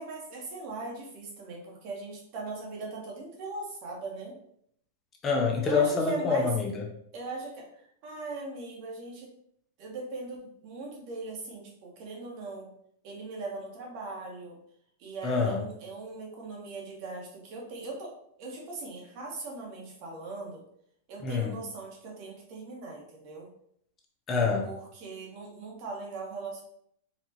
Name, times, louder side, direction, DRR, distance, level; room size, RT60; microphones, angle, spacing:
voice 1, 0.0-4.4 5.6-6.5 7.1-9.3 9.8-12.7 13.0-14.6 15.0-20.6 21.1-23.5 24.6-26.6, right 3 dB, 50° right, -1 dB, 1.2 m, -39 dB
voice 2, 5.2-6.8 15.2-15.6 21.2-21.6 24.3-24.7, left 4 dB, 25° left, 1 dB, 0.6 m, -26 dB
4.2 x 2.4 x 2.9 m, 0.69 s
hypercardioid pair, 130°, 0 cm